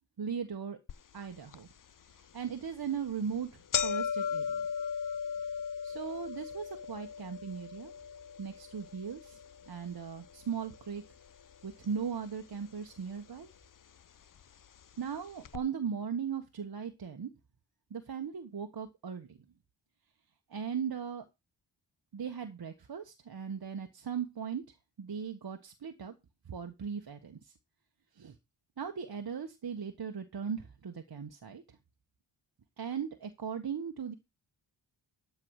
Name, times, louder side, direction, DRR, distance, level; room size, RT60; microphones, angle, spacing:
voice 1, 0.2-0.8 1.1-1.7 2.3-3.5 3.8-4.7 5.8-7.9 8.4-9.4 9.7-11.0 11.6-13.5 15.0-17.3 17.9-19.4 20.5-21.2 22.1-24.6 25.0-26.1 26.5-27.5 28.1-28.3 28.8-31.8 32.8-34.1, right 7 dB, 50° right, 5 dB, 1.4 m, -38 dB
sound 1, 0.9-1.0 1.5-1.6 2.5-2.7 3.0-3.1 3.3-11.6 11.8-12.6 13.4-13.5 14.4-14.5 14.8-14.9 15.4-15.6, left 7 dB, 45° left, 0.8 m, -37 dB
12.5 x 4.8 x 6.5 m, 0.25 s
cardioid pair, 55°, 46 cm